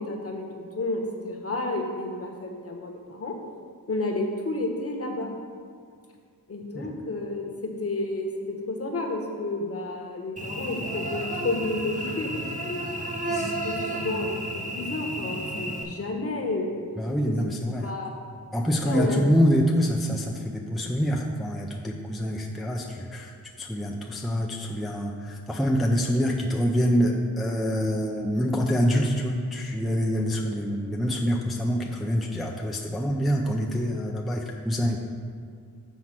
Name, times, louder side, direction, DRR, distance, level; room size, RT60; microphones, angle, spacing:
voice 1, 0.0-3.3 3.9-5.3 6.5-12.8 13.3-16.8 17.3-17.5 17.8-18.1 18.8-19.2, left 2 dB, 40° left, 1 dB, 1.2 m, -31 dB
Cricket / Buzz, 10.4-15.8, right 1 dB, 20° right, 0.9 m, -32 dB
voice 2, 17.0-17.9 18.5-35.0, equal, ahead, -1 dB, 0.5 m, -26 dB
7.5 x 4.3 x 5.9 m, 2.1 s
wide cardioid pair, 95°, 36 cm